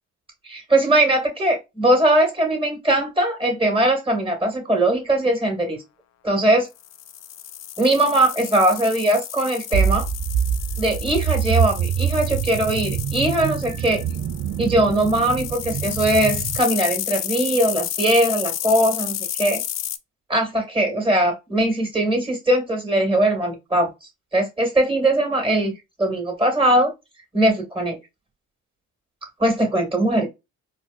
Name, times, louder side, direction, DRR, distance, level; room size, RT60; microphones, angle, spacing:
voice 1, 0.4-5.8 6.2-6.7 7.8-10.1 10.8-14.0 14.6-19.6 20.3-25.7 26.0-26.9 27.3-28.0 29.4-30.3, right 1 dB, 15° right, 2.0 m, -20 dB
sound 1, 6.8-20.0, left 11 dB, 60° left, 0.5 m, -31 dB
sound 2, 9.7-16.6, right 8 dB, 60° right, 0.7 m, -25 dB
4.4 x 2.1 x 2.5 m
cardioid pair, 90°, 30 cm